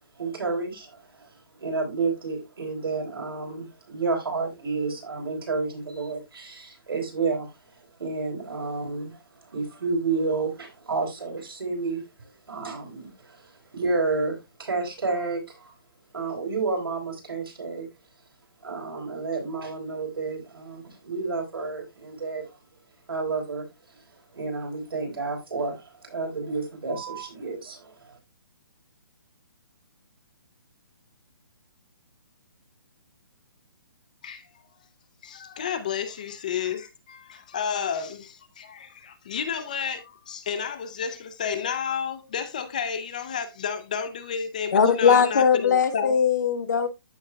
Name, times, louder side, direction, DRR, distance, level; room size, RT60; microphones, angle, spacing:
voice 1, 0.2-1.3 1.6-7.5 8.0-9.2 9.5-15.7 16.1-17.9 18.6-22.5 23.1-23.7 24.3-28.2, right 4 dB, 80° right, 4.1 m, -30 dB
voice 2, 35.2-46.2, left 7 dB, 20° left, 0.5 m, -31 dB
voice 3, 44.7-46.9, left 6 dB, 50° left, 1.2 m, -20 dB
14.0 x 4.8 x 2.2 m
hypercardioid pair, 180°, 12 cm